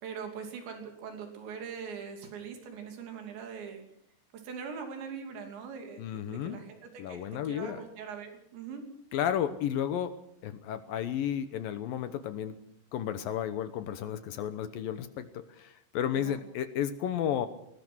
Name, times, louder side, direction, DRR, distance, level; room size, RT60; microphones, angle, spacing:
voice 1, 0.0-3.8 4.3-8.9 16.1-16.4, right 6 dB, 85° right, 4 dB, 5.2 m, -42 dB
voice 2, 6.0-6.6 7.0-7.8 9.1-10.1 10.4-12.6 12.9-17.5, left 9 dB, 70° left, 11 dB, 2.3 m, -33 dB
21.5 x 19.0 x 6.3 m, 0.72 s
omnidirectional pair, 5.0 m